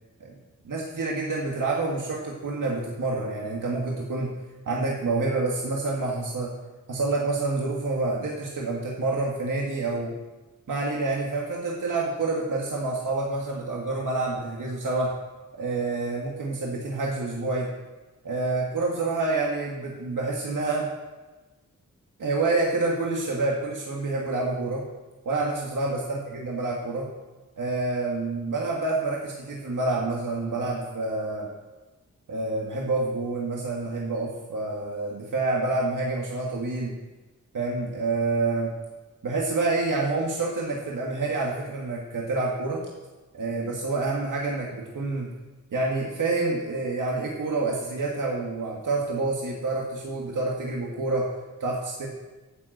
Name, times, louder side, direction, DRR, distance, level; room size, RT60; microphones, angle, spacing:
voice 1, 0.6-4.3 4.7-6.5 6.9-10.1 10.7-15.1 15.6-17.7 18.2-20.9 22.2-24.8 25.3-27.1 27.6-31.5 32.3-36.9 37.5-38.7 39.2-42.8 43.3-45.3 45.7-51.3 51.6-52.1, right 3 dB, 85° right, -3 dB, 1.9 m, -28 dB
11.0 x 8.0 x 7.9 m, 1.2 s
wide cardioid pair, 135°, 31 cm